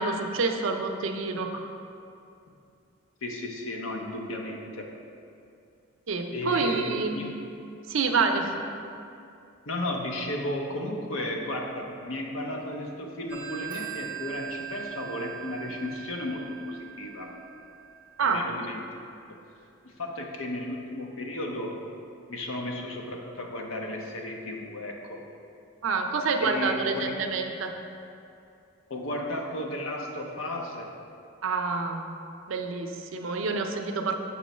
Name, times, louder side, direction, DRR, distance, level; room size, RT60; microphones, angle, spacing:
voice 1, 0.0-1.5 6.1-7.2 7.9-8.5 18.2-18.7 25.8-27.7 31.4-32.0 32.5-34.1, right 4 dB, 80° right, 4 dB, 0.5 m, -27 dB
voice 2, 3.2-4.9 6.3-7.3 9.7-17.4 18.2-19.0 19.3-19.4 19.8-21.8 22.3-25.2 26.4-27.1 28.9-30.9, left 1 dB, 90° left, 1 dB, 0.8 m, -34 dB
Telephone, 13.3-18.6, right 10 dB, 5° right, 0.6 m, -41 dB
7.0 x 3.0 x 5.4 m, 2.6 s
head